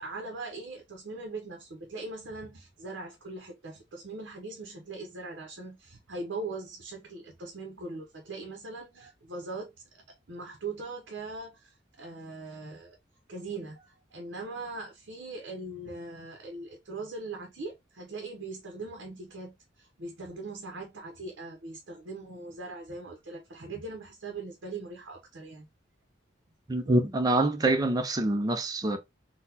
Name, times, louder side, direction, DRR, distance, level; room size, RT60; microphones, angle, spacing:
voice 1, 0.0-13.0 13.3-25.7, right 3 dB, 65° right, 0.7 m, -41 dB
voice 2, 26.7-29.0, right 2 dB, 20° right, 0.4 m, -25 dB
3.9 x 2.1 x 2.7 m
head